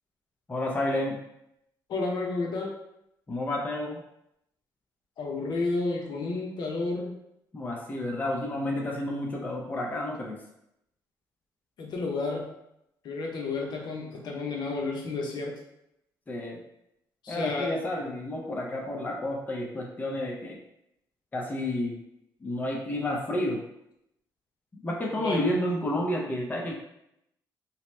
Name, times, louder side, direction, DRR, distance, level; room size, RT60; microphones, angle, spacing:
voice 1, 0.5-1.2 3.3-4.0 7.5-10.4 16.3-16.6 17.3-20.6 21.3-22.0 22.4-23.6 24.8-26.7, left 1 dB, 20° left, -1 dB, 0.5 m, -30 dB
voice 2, 1.9-2.7 5.2-7.1 11.8-12.5 13.0-15.5 17.2-17.8 25.2-25.5, left 3 dB, 65° left, 0 dB, 0.6 m, -31 dB
2.8 x 2.1 x 3.1 m, 0.80 s
cardioid pair, 100°, 8 cm